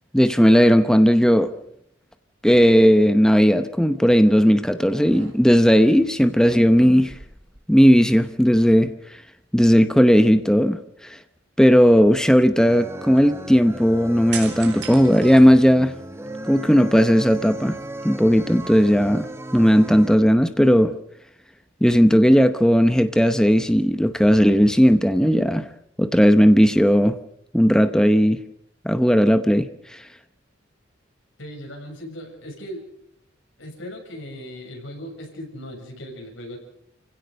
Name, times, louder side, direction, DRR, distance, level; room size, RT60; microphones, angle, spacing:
voice 1, 0.1-1.5 2.4-7.2 7.7-9.2 9.5-11.2 11.6-15.9 16.5-17.8 18.0-19.3 19.5-20.9 21.8-25.7 26.0-27.2 27.5-28.4 28.8-30.1, equal, 5° left, 0.8 m, -16 dB
sound 1, 4.2-4.5 4.9-5.7 6.9-8.2 8.5-8.7 14.3-16.1 16.6-17.5, right 7 dB, 70° right, 4.4 m, -39 dB
sound 2, 12.7-20.2, right 1 dB, 15° right, 1.1 m, -36 dB
voice 2, 31.4-32.8 33.6-36.6, equal, 80° left, 7.1 m, -37 dB
29.0 x 16.5 x 6.5 m
head